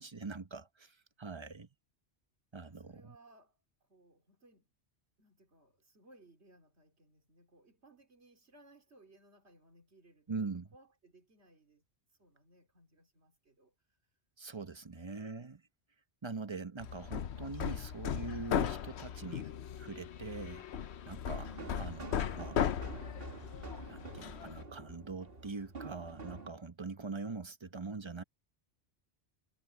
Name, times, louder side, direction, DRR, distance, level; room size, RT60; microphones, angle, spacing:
voice 1, 0.0-1.7 2.5-3.1 10.3-10.7 14.4-15.6 16.2-19.5 19.8-20.6 21.1-22.7 23.9-28.2, right 4 dB, 25° right, 1.0 m, -43 dB
voice 2, 2.6-4.7 5.2-11.8 12.2-13.7, right 2 dB, 75° right, 3.7 m, -63 dB
Hammer, 16.8-24.6, left 8 dB, 75° left, 1.0 m, -37 dB
sound 1, 21.3-26.5, right 3 dB, 55° right, 2.4 m, -48 dB
omnidirectional pair, 1.1 m